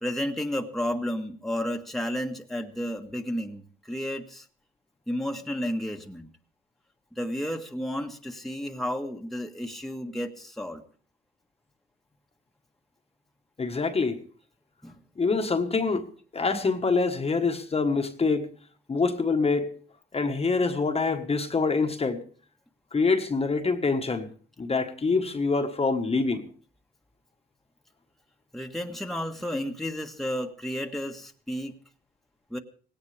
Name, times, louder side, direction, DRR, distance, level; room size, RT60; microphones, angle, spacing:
voice 1, 0.0-4.4 5.1-6.3 7.1-10.8 14.8-15.0 28.5-31.8 32.5-32.6, equal, ahead, 1.5 m, -32 dB
voice 2, 13.6-14.2 15.2-18.5 18.9-19.8 20.1-22.2 22.9-24.3 24.6-26.5, left 4 dB, 30° left, 1.4 m, -25 dB
18.0 x 17.0 x 3.4 m
cardioid pair, 90°, 20 cm